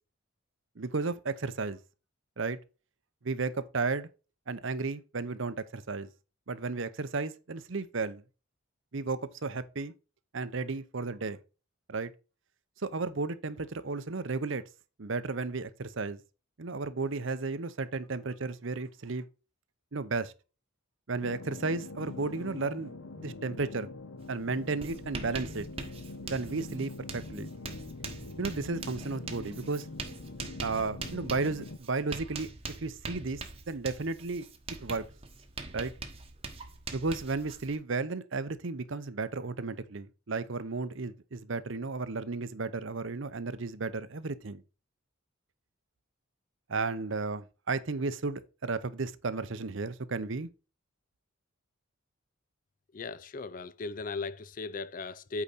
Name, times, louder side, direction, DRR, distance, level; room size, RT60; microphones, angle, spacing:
voice 1, 0.8-1.8 2.4-2.6 3.2-4.1 4.5-6.1 6.5-8.2 8.9-9.9 10.3-11.4 11.9-12.1 12.8-14.6 15.0-16.2 16.6-19.2 19.9-20.3 21.1-22.9 23.2-23.9 24.3-25.7 26.3-27.5 28.4-29.9 30.6-32.5 32.8-33.4 33.7-34.5 34.8-35.1 35.7-35.9 36.9-44.6 46.7-50.5, right 3 dB, 60° right, 0.7 m, -33 dB
sound 1, 21.2-31.8, left 2 dB, 70° left, 0.9 m, -44 dB
Writing, 24.2-24.4 24.6-37.8, right 3 dB, 25° right, 1.1 m, -43 dB
voice 2, 52.9-55.4, left 3 dB, 40° left, 0.4 m, -37 dB
8.4 x 5.0 x 4.1 m
head